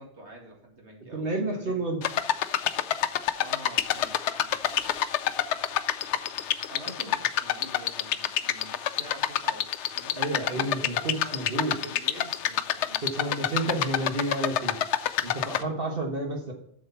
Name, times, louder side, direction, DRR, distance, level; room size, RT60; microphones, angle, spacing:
voice 1, 0.0-1.9 3.4-4.9 6.7-10.7 11.1-14.0 15.5-15.7, right 1 dB, 85° right, 0 dB, 2.5 m, -46 dB
voice 2, 1.1-2.0 10.2-11.7 13.0-14.7 15.2-16.5, right 2 dB, 55° right, 2 dB, 1.5 m, -30 dB
sound 1, 2.0-15.6, left 10 dB, 85° left, 0.9 m, -28 dB
7.7 x 6.4 x 5.6 m, 0.68 s
omnidirectional pair, 1.1 m